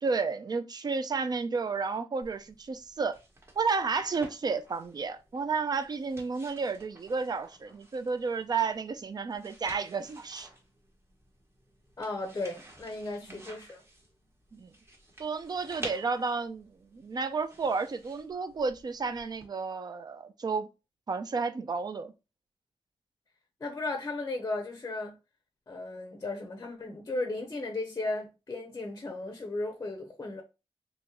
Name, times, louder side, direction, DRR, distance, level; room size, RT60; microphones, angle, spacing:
voice 1, 0.0-3.2 3.6-10.5 13.3-13.4 14.5-14.7 15.2-20.7 21.1-22.1, right 4 dB, 45° right, 0.4 m, -32 dB
sound 1, 2.2-19.5, right 1 dB, 25° right, 1.1 m, -51 dB
voice 2, 12.0-13.8 23.6-25.1 25.7-30.4, left 2 dB, 30° left, 0.6 m, -35 dB
3.5 x 3.0 x 3.0 m
wide cardioid pair, 155°, 10 cm